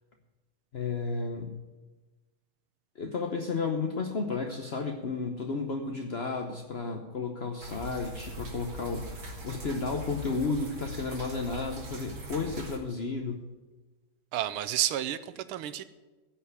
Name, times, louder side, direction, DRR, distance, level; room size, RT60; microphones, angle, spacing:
voice 1, 0.7-1.6 3.0-13.4, left 4 dB, 50° left, 3 dB, 0.7 m, -33 dB
sound 1, 7.6-12.8, right 1 dB, 50° right, 2.7 m, -42 dB
voice 2, 14.3-15.8, right 12 dB, 85° right, 13 dB, 1.6 m, -31 dB
16.0 x 5.8 x 9.6 m, 1.2 s
omnidirectional pair, 2.4 m